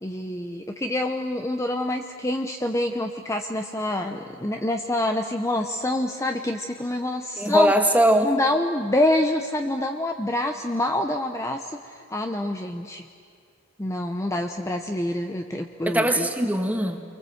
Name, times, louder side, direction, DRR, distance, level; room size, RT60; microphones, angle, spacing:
voice 1, 0.0-7.7 8.2-13.1 13.8-16.3, left 1 dB, 15° left, 4 dB, 0.8 m, -26 dB
voice 2, 7.4-8.3 15.8-17.0, right 1 dB, 10° right, 4 dB, 1.7 m, -21 dB
29.5 x 24.0 x 7.9 m, 2.3 s
head